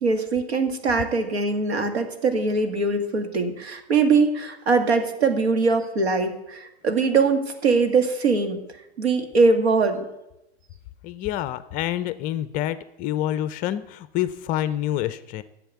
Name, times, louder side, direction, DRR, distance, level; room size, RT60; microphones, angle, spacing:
voice 1, 0.0-8.6 9.0-10.0, right 4 dB, 80° right, 6 dB, 2.1 m, -22 dB
voice 2, 11.0-15.4, left 12 dB, 25° left, 14 dB, 0.5 m, -27 dB
10.0 x 7.6 x 8.3 m, 0.88 s
hypercardioid pair, 130°, 32 cm